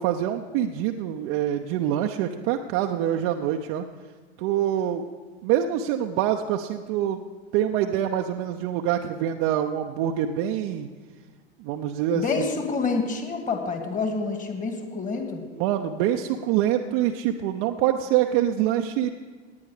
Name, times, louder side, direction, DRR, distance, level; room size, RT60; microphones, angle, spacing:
voice 1, 0.0-3.9 4.4-5.0 5.4-7.2 7.5-10.9 11.6-12.4 15.6-19.1, right 11 dB, 50° right, 3 dB, 0.7 m, -25 dB
voice 2, 12.1-15.4, left 4 dB, 25° left, 4 dB, 2.3 m, -28 dB
18.0 x 9.6 x 4.9 m, 1.4 s
figure-of-eight pair, 80°, 33 cm